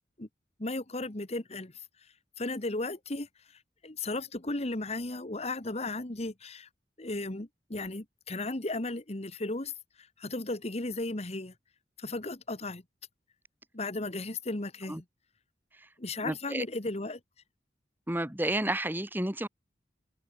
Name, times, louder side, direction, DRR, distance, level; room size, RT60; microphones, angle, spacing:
voice 1, 0.6-1.7 2.4-3.3 3.8-6.7 7.0-9.7 10.0-11.5 12.0-12.8 13.7-15.0 16.0-17.2, left 2 dB, 40° left, 1.6 m, -35 dB
voice 2, 16.2-16.7 18.1-19.5, right 1 dB, 10° right, 1.8 m, -31 dB
open air
head